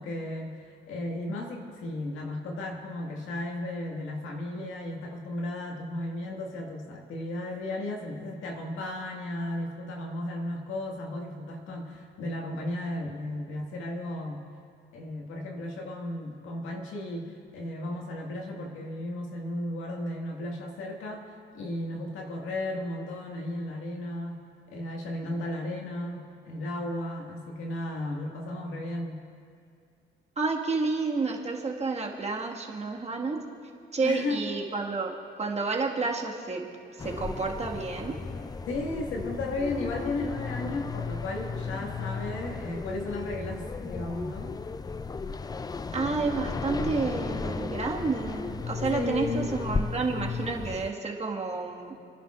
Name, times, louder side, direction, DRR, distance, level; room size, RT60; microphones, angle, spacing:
voice 1, 0.0-14.5 14.9-24.4 24.7-29.2 34.0-34.5 38.7-44.5 48.9-49.6, left 1 dB, 85° left, 0 dB, 1.9 m, -34 dB
voice 2, 30.4-33.4 33.9-36.7 36.9-38.2 45.9-51.9, right 3 dB, 35° right, -1 dB, 1.8 m, -30 dB
sound 1, 37.0-50.9, left 4 dB, 20° left, 0.4 m, -35 dB
29.5 x 10.5 x 2.5 m, 2.4 s
cardioid pair, 90°, 20 cm